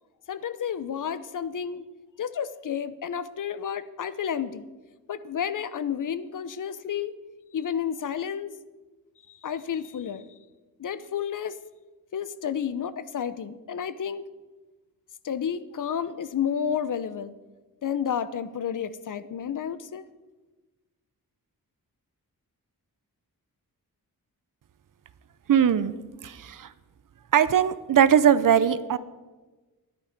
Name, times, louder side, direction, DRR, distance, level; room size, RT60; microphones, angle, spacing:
voice 1, 0.3-1.8 2.2-4.7 5.1-7.1 7.5-8.5 9.4-10.3 10.8-11.5 12.1-14.2 15.2-17.3 17.8-20.0, left 8 dB, 60° left, 15 dB, 0.7 m, -31 dB
voice 2, 25.5-25.9 26.2-26.7 27.3-29.0, right 8 dB, 60° right, 15 dB, 0.6 m, -20 dB
13.5 x 11.0 x 5.2 m, 1.2 s
wide cardioid pair, 115°, 36 cm